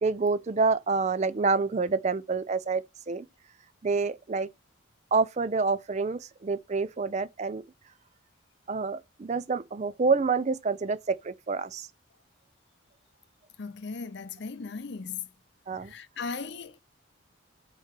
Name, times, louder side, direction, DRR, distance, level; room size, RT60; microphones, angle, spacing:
voice 1, 0.0-3.2 3.8-4.5 5.1-7.6 8.7-11.9 15.7-15.9, right 4 dB, 35° right, 0.4 m, -27 dB
voice 2, 13.6-15.3 15.8-16.8, left 5 dB, 55° left, 0.5 m, -37 dB
4.7 x 4.6 x 5.8 m
head